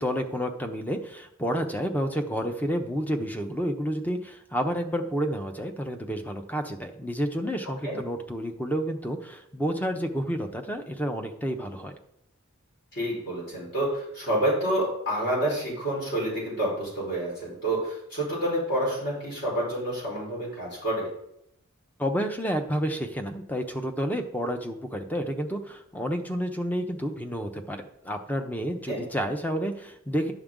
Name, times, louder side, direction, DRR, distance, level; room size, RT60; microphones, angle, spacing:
voice 1, 0.0-12.0 22.0-30.3, equal, 10° left, 5 dB, 0.8 m, -30 dB
voice 2, 12.9-21.1 28.9-29.0, right 1 dB, 50° left, -5 dB, 4.2 m, -28 dB
10.5 x 7.1 x 3.8 m, 0.76 s
head